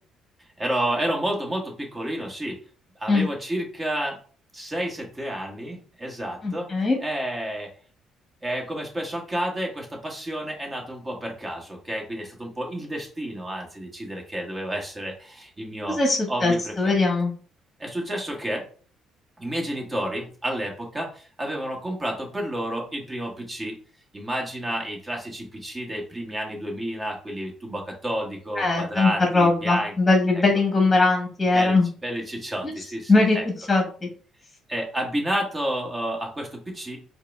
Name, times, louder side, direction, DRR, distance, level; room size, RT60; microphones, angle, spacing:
voice 1, 0.6-2.6 3.0-4.2 4.5-6.7 7.0-7.7 8.4-16.0 16.3-17.0 17.8-18.6 19.4-23.8 24.1-29.9 30.3-30.4 31.5-31.8 32.0-33.4 34.7-37.0, right 1 dB, 25° right, 0 dB, 1.6 m, -30 dB
voice 2, 6.4-7.0 16.0-17.3 28.6-31.9 32.6-32.7 33.1-33.4 33.7-34.1, left 3 dB, 20° left, 1 dB, 1.4 m, -21 dB
4.6 x 2.3 x 3.4 m, 0.41 s
supercardioid pair, 60°, 0 cm